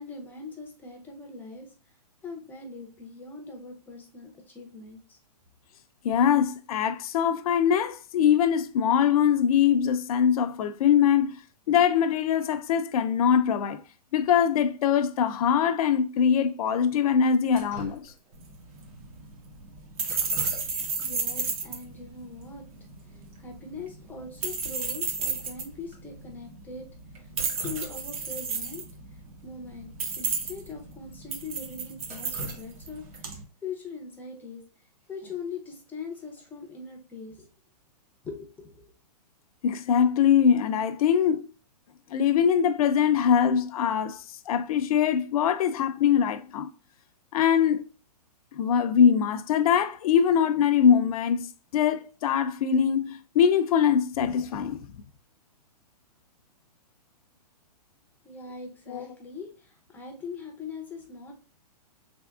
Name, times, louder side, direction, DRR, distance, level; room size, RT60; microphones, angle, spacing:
voice 1, 0.0-1.7 2.2-5.2 21.0-22.7 23.0-26.9 27.2-27.3 27.6-28.8 29.1-34.6 35.1-37.5 38.2-38.9 58.2-61.3, left 4 dB, 10° left, 0.5 m, -41 dB
voice 2, 6.0-11.4 11.7-13.8 14.1-18.1 39.6-41.5 42.1-46.7 47.3-47.8 48.5-54.8 58.9-59.1, left 8 dB, 60° left, 0.5 m, -23 dB
Drip, 17.5-18.5 20.0-21.1 21.4-21.5 22.4-22.5 22.8-23.0 23.3-23.4 23.9-24.0 24.4-24.5 25.1-25.2 25.9-26.0 27.1-28.3 28.7-28.8 30.1-30.2 30.6-30.7 31.2-31.3 31.8-33.4 35.4-35.7 36.1-36.5, equal, 30° right, 1.1 m, -44 dB
sound 1, 18.3-33.4, right 4 dB, 60° right, 1.0 m, -33 dB
3.5 x 3.4 x 2.3 m
hypercardioid pair, 150°, 21 cm